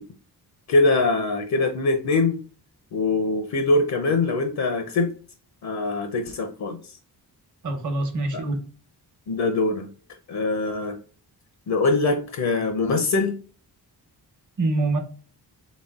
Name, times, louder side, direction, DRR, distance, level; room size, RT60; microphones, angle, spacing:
voice 1, 0.7-2.4 2.9-5.1 5.6-7.0 8.3-8.4 9.3-9.9 10.3-11.0 11.7-13.3, left 3 dB, 65° left, 0.7 m, -23 dB
voice 2, 7.6-8.6 14.6-15.0, right 2 dB, 50° right, 1.0 m, -24 dB
4.1 x 3.4 x 2.3 m
wide cardioid pair, 105°, 40 cm